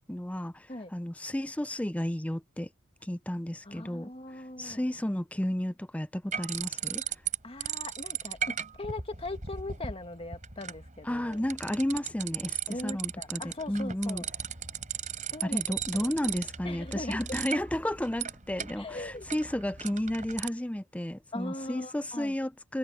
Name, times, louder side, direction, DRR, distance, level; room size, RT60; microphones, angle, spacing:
voice 1, 0.1-2.7 3.0-4.1 4.4-7.0 11.0-14.2 15.4-22.8, left 1 dB, 5° left, 0.5 m, -32 dB
voice 2, 3.6-4.8 7.4-11.4 12.7-14.3 15.3-15.6 15.9-16.1 16.6-17.4 18.8-19.3 21.3-22.3, left 2 dB, 30° left, 2.0 m, -40 dB
sound 1, 6.3-7.4 7.6-20.5, right 8 dB, 40° right, 4.7 m, -37 dB
head